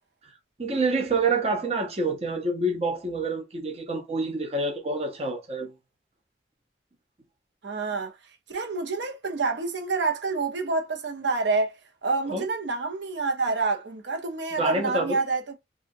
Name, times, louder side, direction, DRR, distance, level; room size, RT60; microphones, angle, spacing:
voice 1, 0.6-5.7 12.3-12.5 14.6-15.2, right 2 dB, 35° right, 0.6 m, -27 dB
voice 2, 7.6-8.1 8.5-11.7 12.0-15.5, right 3 dB, 85° right, 0.8 m, -27 dB
2.9 x 2.4 x 2.6 m
head